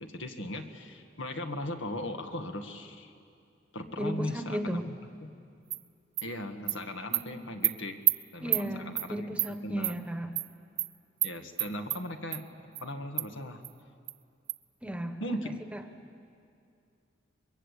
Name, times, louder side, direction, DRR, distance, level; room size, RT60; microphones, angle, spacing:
voice 1, 0.0-3.1 3.7-5.3 6.2-10.0 11.2-12.5 12.7-13.6 15.2-15.6, left 1 dB, 85° left, 5 dB, 1.8 m, -38 dB
voice 2, 4.0-4.9 7.1-7.5 8.4-10.4 14.8-15.3 15.7-15.8, equal, 5° right, 7 dB, 1.2 m, -35 dB
Animal, 5.7-5.8 6.2-6.3 6.7-6.8 7.1-7.2 7.6-7.7 8.1-8.2 8.5-8.6 9.0-9.1 9.4-9.5 9.8-9.9 10.4-10.5 10.8-10.9 11.2-11.3 11.6-12.0 12.3-12.4 12.8-12.9 13.2-13.3 13.6-13.7 14.1-14.2 14.5-14.6, right 18 dB, 60° right, 0.6 m, -28 dB
28.0 x 22.0 x 8.3 m, 2.5 s
head